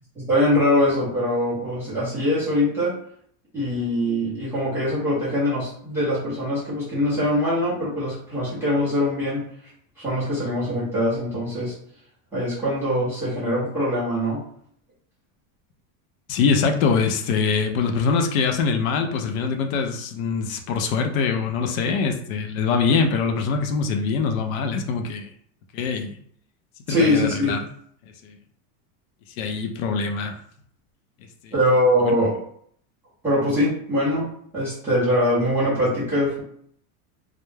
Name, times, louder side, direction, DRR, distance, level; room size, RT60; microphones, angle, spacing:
voice 1, 0.2-3.0 3.5-9.4 10.0-11.8 12.3-14.4 26.9-27.5 31.5-32.4 33.2-36.4, left 1 dB, 5° right, -12 dB, 0.4 m, -22 dB
voice 2, 16.3-25.3 25.7-26.2 26.9-27.6 28.2-28.4 29.4-30.4 31.4-31.5 32.0-32.2, left 5 dB, 65° left, 4 dB, 0.5 m, -23 dB
2.2 x 2.0 x 3.1 m, 0.66 s
supercardioid pair, 160°, 45 cm